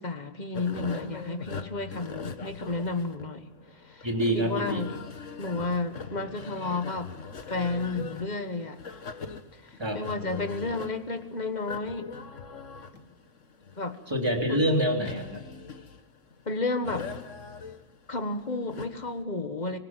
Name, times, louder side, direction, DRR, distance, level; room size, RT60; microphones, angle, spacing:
voice 1, 0.0-3.5 3.8-4.1 4.3-4.9 5.4-7.1 7.5-8.8 9.5-12.1 13.8-14.0 14.5-14.6 16.4-17.1 18.1-19.8, left 3 dB, 35° left, 8 dB, 1.7 m, -32 dB
sound 1, 0.5-19.2, left 5 dB, 90° left, 1.7 m, -41 dB
voice 2, 4.0-4.9 9.8-10.0 14.1-15.4, equal, 20° right, 1 dB, 3.5 m, -26 dB
24.5 x 19.0 x 7.5 m, 1.1 s
omnidirectional pair, 1.2 m